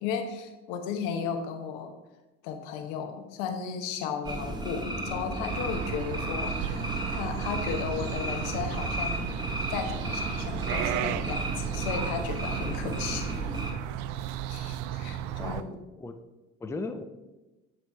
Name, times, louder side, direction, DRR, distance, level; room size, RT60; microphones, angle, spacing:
voice 1, 0.0-1.9 2.4-9.2 9.7-13.3 14.5-15.7, left 6 dB, 75° left, 6 dB, 1.0 m, -35 dB
sound 1, 4.2-13.7, right 1 dB, 10° right, 1.2 m, -34 dB
sound 2, 5.5-15.6, right 11 dB, 75° right, 0.5 m, -35 dB
voice 2, 15.2-16.2 16.6-17.0, left 3 dB, 10° left, 8 dB, 0.5 m, -37 dB
9.8 x 3.3 x 4.3 m, 1.1 s
hypercardioid pair, 75°, 37 cm